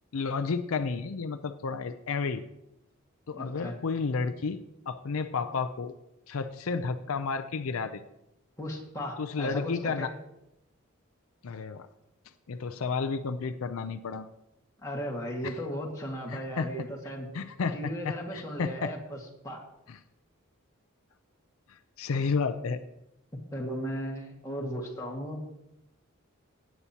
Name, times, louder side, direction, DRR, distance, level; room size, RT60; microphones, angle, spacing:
voice 1, 0.1-2.4 3.3-4.6 4.9-5.9 6.3-8.0 9.2-10.1 11.4-11.9 12.5-14.3 15.4-15.6 16.3-16.7 17.3-17.8 18.0-18.9 19.9-20.0 21.7-22.8, left 4 dB, 80° left, 9 dB, 0.5 m, -31 dB
voice 2, 3.4-3.7 8.6-10.1 14.8-17.3 17.7-19.2 19.4-19.6 23.5-25.4, equal, 15° left, -2 dB, 1.9 m, -36 dB
16.5 x 8.3 x 2.9 m, 0.87 s
head